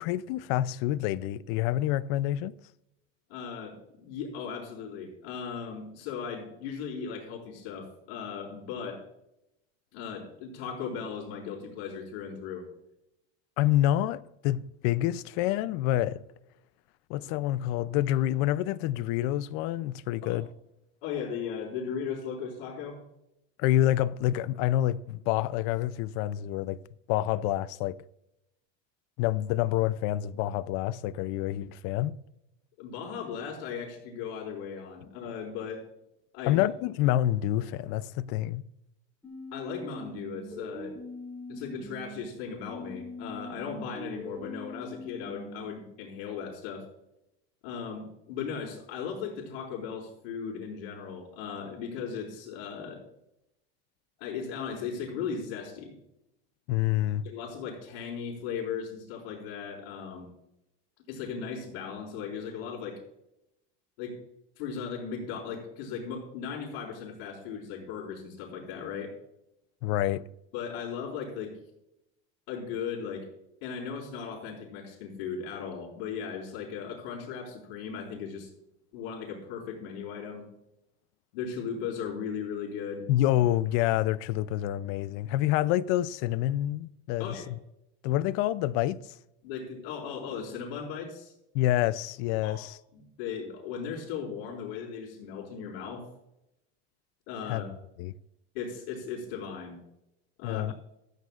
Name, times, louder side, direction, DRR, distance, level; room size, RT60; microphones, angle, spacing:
voice 1, 0.0-2.5 13.6-16.2 17.1-20.5 23.6-26.8 27.1-28.0 29.2-32.2 36.5-38.6 56.7-57.2 69.8-70.2 83.1-87.3 88.0-89.0 91.5-92.7 97.5-97.6 98.0-98.1 100.4-100.7, left 13 dB, 50° left, 0.4 m, -27 dB
voice 2, 3.3-9.0 9.9-12.6 20.2-20.4 21.0-23.0 32.8-35.8 36.3-36.6 39.5-40.9 41.5-46.8 47.6-53.0 54.2-55.9 57.2-60.3 61.1-63.0 64.0-64.2 64.6-69.1 70.5-71.5 72.5-73.3 73.6-78.5 78.9-80.5 81.3-83.1 87.2-87.5 89.4-91.3 92.4-92.7 92.9-96.1 97.3-97.7 98.5-99.8 100.4-100.7, left 6 dB, 80° left, 4.3 m, -37 dB
sound 1, 39.2-42.2 42.6-45.7, left 2 dB, 5° left, 3.7 m, -42 dB
15.5 x 13.0 x 2.4 m
cardioid pair, 175°, 30 cm